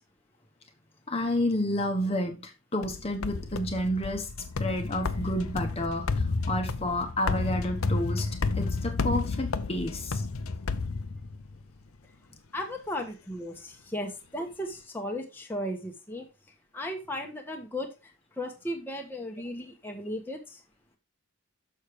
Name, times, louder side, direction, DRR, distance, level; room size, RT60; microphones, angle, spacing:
voice 1, 1.1-4.3 4.6-10.2, left 1 dB, 30° left, 1.1 m, -30 dB
sound 1, 2.8-11.6, left 3 dB, 85° left, 0.7 m, -31 dB
voice 2, 12.5-16.3 16.7-20.6, left 1 dB, 10° left, 1.1 m, -36 dB
6.5 x 6.4 x 4.8 m
head